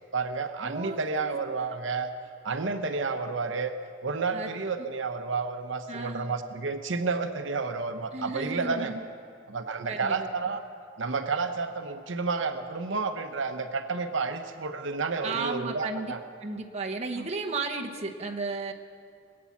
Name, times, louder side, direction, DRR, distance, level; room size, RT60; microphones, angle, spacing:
voice 1, 0.1-2.1 2.4-3.7 4.0-8.9 9.5-10.6 11.0-16.2 17.1-17.3, right 4 dB, 75° right, 7 dB, 0.8 m, -31 dB
voice 2, 0.6-1.4 4.3-4.5 5.9-6.3 8.1-9.0 9.9-10.5 15.2-16.1 16.4-18.7, right 3 dB, 35° right, 2 dB, 0.9 m, -34 dB
21.0 x 8.7 x 7.1 m, 2.4 s
head